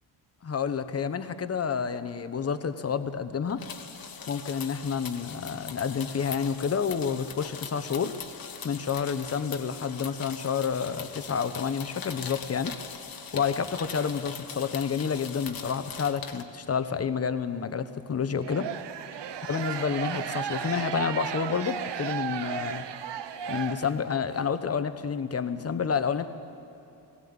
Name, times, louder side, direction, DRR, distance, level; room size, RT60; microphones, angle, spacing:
voice 1, 0.4-3.6 4.3-8.1 8.6-12.7 13.3-18.7 19.5-22.8 23.5-26.3, left 6 dB, 30° left, 11 dB, 1.0 m, -29 dB
sound 1, 3.5-16.4, left 6 dB, 50° left, 1.4 m, -41 dB
sound 2, 18.4-24.3, right 9 dB, 65° right, 1.0 m, -34 dB
18.5 x 16.5 x 8.7 m, 3.0 s
cardioid pair, 120°, 46 cm